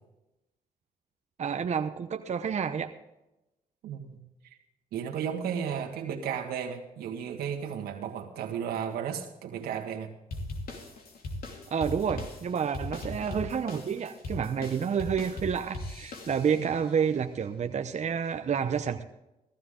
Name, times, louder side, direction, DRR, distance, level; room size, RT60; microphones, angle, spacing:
voice 1, 1.4-2.9 11.7-19.0, right 7 dB, 50° right, 7 dB, 0.8 m, -29 dB
voice 2, 3.8-4.6 4.9-10.1 16.6-16.7, right 8 dB, 90° right, 2 dB, 1.8 m, -34 dB
Dayvmen with Hihat, 10.3-16.8, left 1 dB, 75° left, 2.8 m, -39 dB
15.0 x 14.5 x 3.8 m, 0.94 s
cardioid pair, 70°, 15 cm